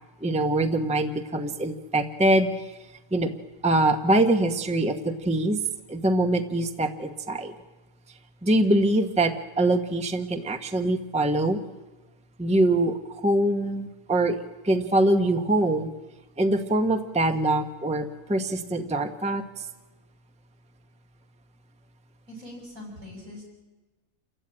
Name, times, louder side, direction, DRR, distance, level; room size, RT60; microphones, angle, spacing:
voice 1, 0.2-2.5 3.1-3.3 3.6-5.6 5.9-7.5 8.4-11.6 12.4-14.4 14.6-15.9 16.4-19.4, right 1 dB, 5° right, 6 dB, 1.0 m, -23 dB
voice 2, 22.3-23.4, left 1 dB, 80° right, 0 dB, 7.6 m, -42 dB
28.0 x 14.5 x 8.8 m, 1.2 s
omnidirectional pair, 1.5 m